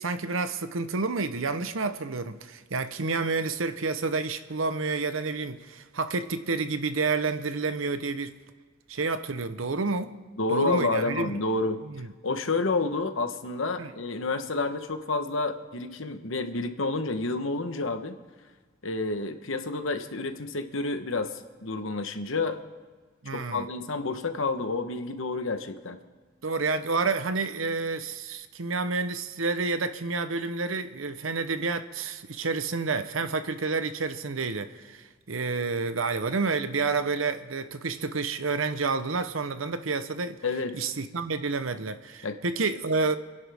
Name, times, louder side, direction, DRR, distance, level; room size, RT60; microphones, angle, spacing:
voice 1, 0.0-8.4 8.9-10.2 10.5-11.3 11.9-12.1 13.8-13.9 23.2-23.7 26.4-40.4 40.7-43.2, right 4 dB, 75° right, 0.9 m, -29 dB
voice 2, 10.4-11.8 12.2-18.2 18.8-22.6 23.3-26.0 40.4-40.8 42.2-42.4, left 3 dB, 70° left, 1.1 m, -29 dB
29.0 x 11.0 x 3.6 m
head